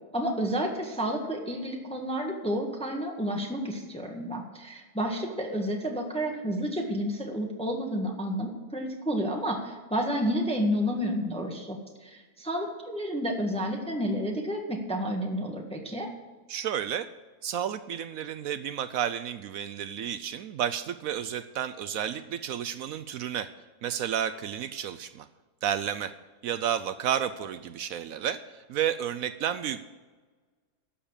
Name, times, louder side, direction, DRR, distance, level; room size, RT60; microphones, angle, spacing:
voice 1, 0.1-16.1, equal, 5° left, 1 dB, 1.4 m, -30 dB
voice 2, 16.5-17.1 17.4-23.5 23.8-25.3 25.6-26.1 26.4-29.8, right 9 dB, 70° right, 12 dB, 0.9 m, -31 dB
12.0 x 7.3 x 8.7 m, 1.3 s
omnidirectional pair, 1.7 m